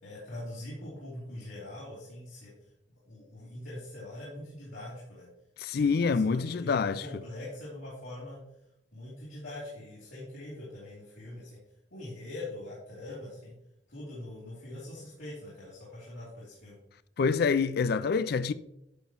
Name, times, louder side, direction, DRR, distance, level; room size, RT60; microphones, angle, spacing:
voice 1, 0.0-2.5 3.0-5.3 5.7-8.4 8.9-11.6 11.9-13.5 13.9-16.8, left 1 dB, 80° left, 3.2 m, -43 dB
voice 2, 5.6-7.0 17.2-18.5, left 5 dB, 55° left, 0.4 m, -26 dB
11.0 x 6.8 x 3.0 m
head